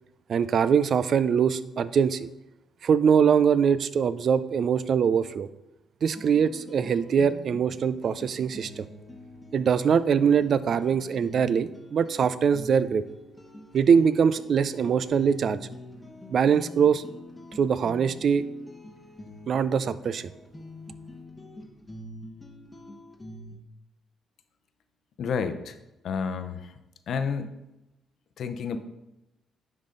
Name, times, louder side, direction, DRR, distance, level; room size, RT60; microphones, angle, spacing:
voice 1, 0.3-2.3 2.8-5.5 6.0-8.8 9.5-13.0 13.7-15.6 16.3-17.0 17.5-18.5 19.5-20.3, right 7 dB, 55° right, 15 dB, 0.4 m, -23 dB
sound 1, 6.0-23.6, left 2 dB, 15° left, 1.0 m, -45 dB
voice 2, 25.2-25.7 26.0-26.7 27.1-27.5 28.4-28.8, left 6 dB, 65° left, 9 dB, 0.7 m, -30 dB
10.5 x 4.0 x 3.8 m, 0.94 s
cardioid pair, 90°, 0 cm